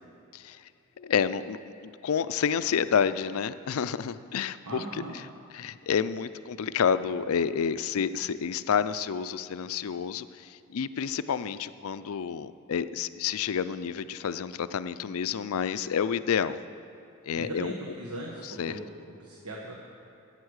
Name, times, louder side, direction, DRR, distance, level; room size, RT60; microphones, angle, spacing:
voice 1, 1.0-4.8 5.5-10.3 10.7-16.6 17.2-17.7 18.6-18.8, left 7 dB, 70° left, 13 dB, 0.4 m, -29 dB
voice 2, 4.6-5.1 17.3-19.8, right 1 dB, 85° right, -3 dB, 1.5 m, -39 dB
14.0 x 8.1 x 6.4 m, 2.5 s
head